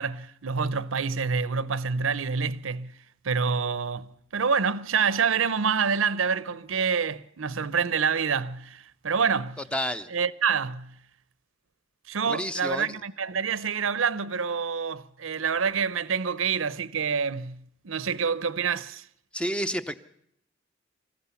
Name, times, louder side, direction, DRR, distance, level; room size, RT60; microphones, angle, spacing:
voice 1, 0.0-2.9 3.2-9.6 10.1-10.9 12.1-19.1, right 6 dB, 90° right, 0.8 m, -27 dB
voice 2, 9.7-10.1 12.3-12.9 19.3-19.9, equal, 5° left, 0.7 m, -30 dB
25.5 x 15.0 x 7.1 m
head